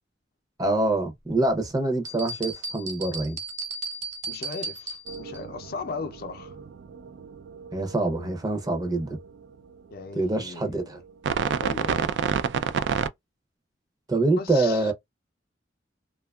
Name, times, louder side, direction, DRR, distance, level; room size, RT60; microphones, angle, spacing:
voice 1, 0.6-3.4 7.7-9.2 10.2-11.0 14.1-14.9, right 2 dB, 20° right, 0.6 m, -25 dB
sound 1, 2.0-5.4, right 2 dB, 40° right, 0.9 m, -35 dB
voice 2, 4.3-6.6 9.9-11.0 11.6-12.1 14.4-14.9, left 4 dB, 55° left, 0.5 m, -37 dB
sound 2, 5.1-9.3 11.2-13.1, right 6 dB, 75° right, 0.3 m, -30 dB
2.6 x 2.3 x 2.2 m
head